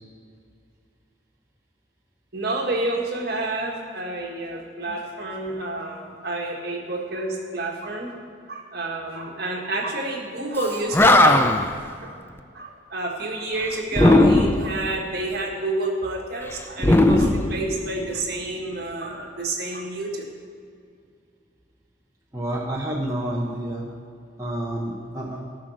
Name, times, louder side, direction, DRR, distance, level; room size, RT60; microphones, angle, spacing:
voice 1, 2.3-8.1 8.5-11.4 12.0-12.1 12.5-20.2, right 2 dB, 50° right, 0 dB, 1.7 m, -29 dB
Animal, 10.6-10.7 10.9-11.8 13.9-14.8 16.8-18.1, left 2 dB, 10° left, 0.4 m, -17 dB
voice 2, 22.3-23.9 24.4-25.4, right 1 dB, 15° right, -4 dB, 1.0 m, -29 dB
14.5 x 6.1 x 6.4 m, 2.3 s
head